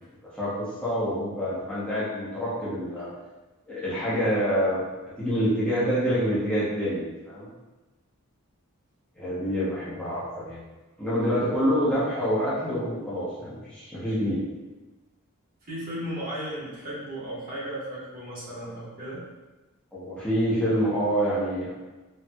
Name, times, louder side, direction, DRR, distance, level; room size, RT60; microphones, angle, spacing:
voice 1, 0.4-3.1 3.7-4.9 5.2-7.5 9.2-10.6 11.0-14.4 19.9-21.7, equal, 5° left, -11 dB, 0.7 m, -26 dB
voice 2, 15.7-19.2, equal, 40° right, -8 dB, 1.1 m, -35 dB
4.2 x 2.3 x 2.3 m, 1.1 s
head